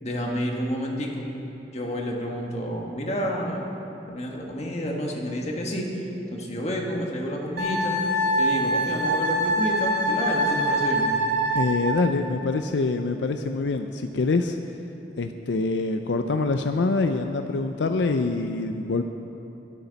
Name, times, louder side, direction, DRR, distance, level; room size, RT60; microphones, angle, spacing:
voice 1, 0.0-1.2 1.7-3.6 4.1-5.9 6.3-7.9 8.4-11.1, equal, 35° left, -1 dB, 1.5 m, -29 dB
Wind instrument woodwind instrument, 7.6-12.0, right 1 dB, 60° right, 1.4 m, -24 dB
voice 2, 11.5-14.6 15.2-19.0, left 3 dB, 80° left, 7 dB, 0.5 m, -25 dB
21.5 x 8.4 x 4.1 m, 3.0 s
head